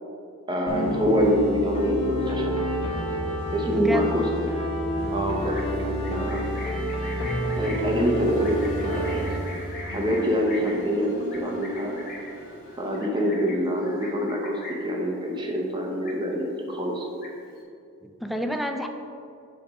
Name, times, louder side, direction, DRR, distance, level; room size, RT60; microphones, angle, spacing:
voice 1, 0.5-2.6 3.5-4.5 5.1-6.5 7.5-9.3 9.9-11.9 12.8-17.1, equal, 20° right, 0 dB, 0.8 m, -25 dB
sound 1, 0.7-9.4, equal, 25° left, 0.8 m, -29 dB
voice 2, 3.7-4.1 18.0-18.9, right 1 dB, ahead, 5 dB, 0.3 m, -28 dB
sound 2, 4.9-13.0, right 1 dB, 65° left, 1.4 m, -42 dB
Livestock farm animals working animals, 5.4-15.0 15.3-15.6 15.9-16.6 16.9-17.6, left 1 dB, 45° left, 1.2 m, -41 dB
7.9 x 3.3 x 5.2 m, 2.5 s
head